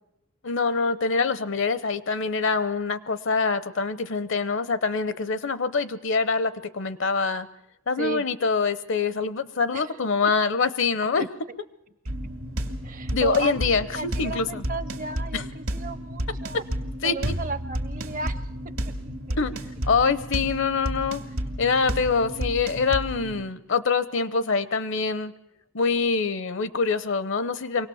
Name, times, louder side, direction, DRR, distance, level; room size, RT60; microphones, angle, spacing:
voice 1, 0.4-7.5 7.9-11.3 13.1-13.9 14.2-14.6 15.3-15.5 17.0-17.3 19.4-19.5 19.9-21.2 21.6-25.3 25.7-27.9, left 4 dB, 60° left, 14 dB, 0.8 m, -25 dB
sound 1, 12.0-23.4, equal, 80° right, 2.1 m, -32 dB
voice 2, 12.8-16.6 17.0-18.5 19.3-19.4, right 4 dB, 40° right, 14 dB, 0.7 m, -34 dB
24.0 x 18.0 x 7.1 m, 0.84 s
head